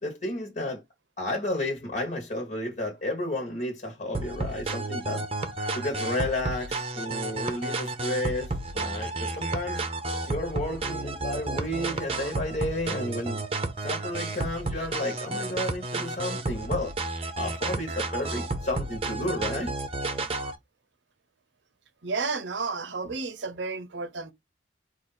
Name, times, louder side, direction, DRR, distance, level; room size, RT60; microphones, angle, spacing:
voice 1, 0.0-0.8 1.2-5.2 5.7-9.8 10.3-13.4 13.8-16.9 17.4-19.7 23.0-23.1, left 1 dB, 45° left, 1.3 m, -32 dB
sound 1, 4.1-20.5, right 2 dB, 30° right, 0.8 m, -32 dB
voice 2, 22.0-24.3, right 4 dB, 75° right, 0.8 m, -32 dB
4.8 x 2.6 x 4.1 m
head